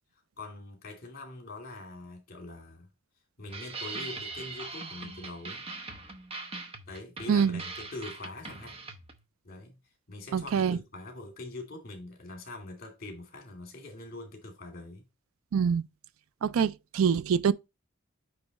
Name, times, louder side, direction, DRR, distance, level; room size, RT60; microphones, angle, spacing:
voice 1, 0.4-2.9 3.4-5.6 6.9-8.8 9.4-9.8 10.1-15.1, left 2 dB, 45° left, 2.6 m, -43 dB
sound 1, 3.5-9.2, right 3 dB, 30° right, 0.8 m, -41 dB
voice 2, 7.3-7.6 10.3-10.8 15.5-15.8 16.4-17.5, right 7 dB, 90° right, 0.4 m, -25 dB
9.3 x 3.2 x 4.1 m
head